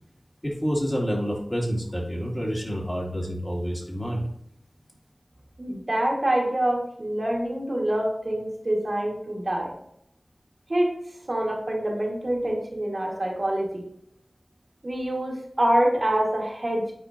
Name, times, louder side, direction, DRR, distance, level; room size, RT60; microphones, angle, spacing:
voice 1, 0.4-4.2, equal, 20° left, -3 dB, 2.5 m, -28 dB
voice 2, 5.6-9.7 10.7-10.9 11.3-13.8 14.8-16.9, right 1 dB, 55° right, -1 dB, 1.8 m, -26 dB
8.8 x 4.7 x 2.8 m, 0.72 s
wide cardioid pair, 40°, 0 cm